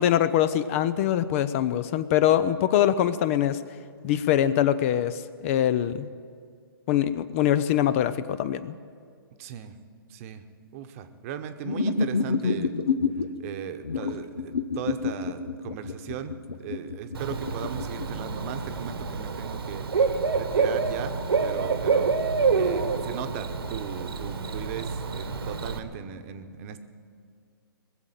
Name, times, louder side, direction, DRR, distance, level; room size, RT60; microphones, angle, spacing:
voice 1, 0.0-3.6 4.0-6.1 6.9-8.7, left 11 dB, 35° left, 15 dB, 0.5 m, -23 dB
voice 2, 9.4-9.8 10.1-10.4 10.7-12.7 13.4-19.8 20.3-21.1 21.4-26.8, right 9 dB, 35° right, 8 dB, 1.0 m, -38 dB
sound 1, 11.7-13.3 13.8-18.1, left 4 dB, 90° left, 1.0 m, -28 dB
Bird / Cricket, 17.1-25.8, right 5 dB, 80° right, 1.4 m, -27 dB
20.5 x 7.6 x 9.1 m, 2.2 s
hypercardioid pair, 140°, 12 cm